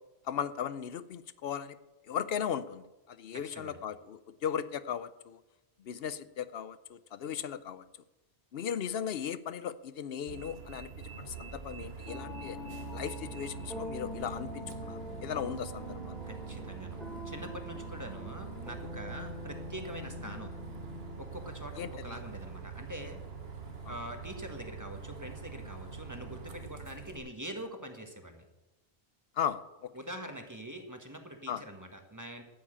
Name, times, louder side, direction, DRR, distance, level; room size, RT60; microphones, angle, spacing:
voice 1, 0.2-1.8 2.1-5.4 5.8-7.8 8.5-10.9 11.2-12.6 12.9-16.1 21.8-22.2 23.9-24.0 29.4-29.9 31.5-31.6, left 8 dB, 70° left, 14 dB, 0.9 m, -37 dB
voice 2, 3.3-3.8 16.3-17.0 17.2-20.5 21.2-23.2 23.9-28.4 29.9-32.4, equal, 15° right, 5 dB, 1.3 m, -44 dB
Bus, 10.3-27.2, right 6 dB, 70° right, 1.7 m, -44 dB
sound 1, 12.1-21.1, left 2 dB, ahead, 2.4 m, -44 dB
12.5 x 7.3 x 8.7 m, 1.1 s
omnidirectional pair, 1.1 m